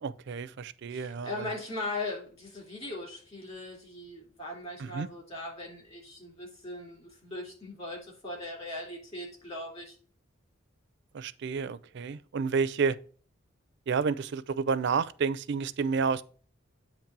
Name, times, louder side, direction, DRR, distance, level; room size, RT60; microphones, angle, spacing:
voice 1, 0.0-1.5 4.8-5.1 11.1-13.0 13.9-16.2, right 5 dB, 60° right, 0.4 m, -30 dB
voice 2, 0.9-9.9, left 2 dB, 30° left, 3.1 m, -39 dB
8.6 x 3.1 x 5.9 m
head